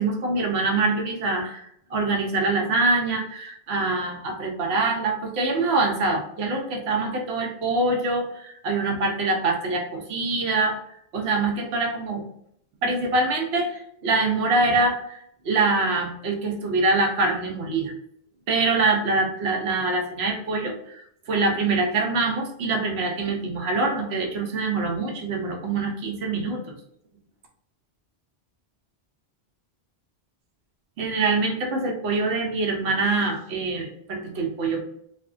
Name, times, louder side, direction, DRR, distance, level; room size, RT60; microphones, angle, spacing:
voice 1, 0.0-12.2 12.8-17.9 18.5-26.8 31.0-34.8, right 3 dB, 75° right, 1 dB, 1.0 m, -24 dB
3.3 x 2.1 x 2.4 m, 0.71 s
omnidirectional pair, 1.1 m